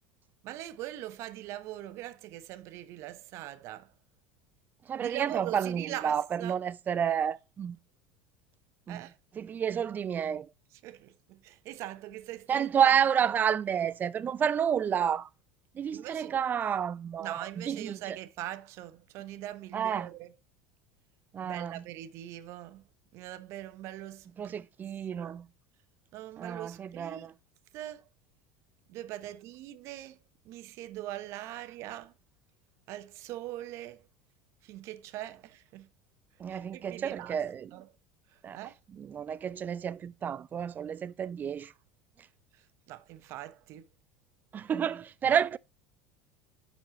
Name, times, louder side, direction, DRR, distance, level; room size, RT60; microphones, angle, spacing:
voice 1, 0.4-3.9 5.0-6.5 8.9-9.1 10.8-13.0 15.9-16.4 17.2-20.3 21.4-22.8 23.1-24.6 25.2-25.3 26.1-27.3 27.7-28.0 28.9-30.2 30.5-32.1 32.9-34.0 34.6-35.9 36.5-37.4 37.7-37.9 38.5-38.7 42.9-43.8 45.2-45.3, right 14 dB, 55° right, 1.0 m, -42 dB
voice 2, 4.9-7.8 8.9-9.0 9.3-10.5 12.5-15.3 15.8-18.2 19.7-20.1 21.3-21.8 24.4-25.5 26.4-27.3 36.4-37.7 38.4-38.6 38.9-41.7 44.5-45.6, right 8 dB, 30° right, 0.5 m, -30 dB
11.0 x 4.3 x 2.9 m
hypercardioid pair, 80°, 6 cm